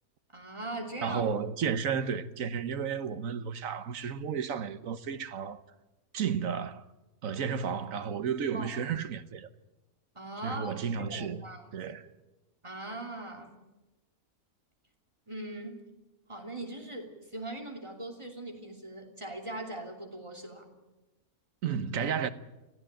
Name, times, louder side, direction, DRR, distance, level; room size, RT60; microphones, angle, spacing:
voice 1, 0.3-1.2 8.5-8.7 10.1-10.7 11.0-11.9 12.6-13.6 15.3-15.8 16.3-20.7, right 1 dB, 20° right, 3.0 m, -40 dB
voice 2, 1.0-5.6 6.1-6.8 7.2-9.5 10.4-11.4 11.7-12.1 21.6-22.3, right 7 dB, 65° right, 1.4 m, -32 dB
24.5 x 15.5 x 9.0 m
omnidirectional pair, 1.6 m